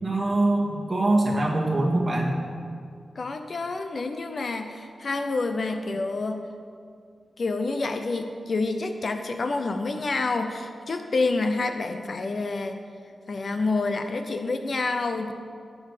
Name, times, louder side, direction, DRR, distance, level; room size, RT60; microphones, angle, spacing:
voice 1, 0.0-2.3, right 2 dB, 30° right, -2 dB, 2.1 m, -23 dB
voice 2, 3.2-6.5 7.4-12.8 13.3-15.3, left 3 dB, 45° left, 7 dB, 0.7 m, -28 dB
17.5 x 7.2 x 5.0 m, 2.2 s
wide cardioid pair, 160°, 0 cm